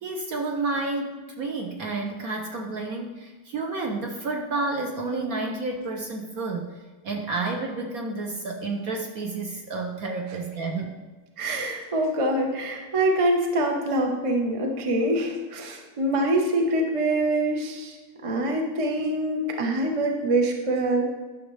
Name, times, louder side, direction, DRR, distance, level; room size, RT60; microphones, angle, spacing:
voice 1, 0.0-11.0, right 3 dB, 60° right, 2 dB, 0.9 m, -30 dB
voice 2, 11.4-18.0 18.2-21.1, right 1 dB, 40° right, 2 dB, 0.4 m, -25 dB
11.0 x 6.4 x 3.2 m, 1.3 s
omnidirectional pair, 2.2 m